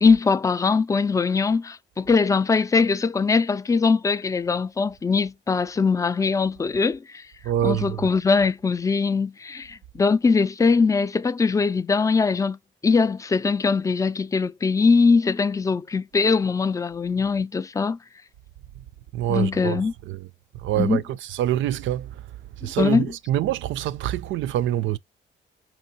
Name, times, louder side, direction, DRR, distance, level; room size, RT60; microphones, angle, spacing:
voice 1, 0.0-7.2 7.6-12.6 12.8-18.0 19.3-19.9 20.8-21.0 22.6-23.1, left 4 dB, 15° left, 0.3 m, -21 dB
voice 2, 7.4-8.1 19.1-19.8 20.1-20.3 20.6-22.1 22.6-25.0, right 12 dB, 75° right, 0.4 m, -25 dB
4.4 x 3.0 x 2.7 m
cardioid pair, 90°, 20 cm